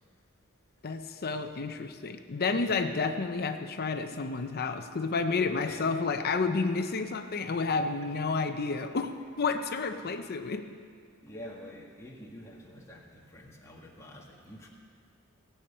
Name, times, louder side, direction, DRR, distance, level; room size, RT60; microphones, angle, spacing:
voice 1, 0.8-10.7, left 4 dB, 45° left, 7 dB, 0.6 m, -30 dB
voice 2, 11.2-14.7, left 1 dB, 15° left, -3 dB, 1.8 m, -47 dB
18.0 x 8.6 x 5.5 m, 2.1 s
head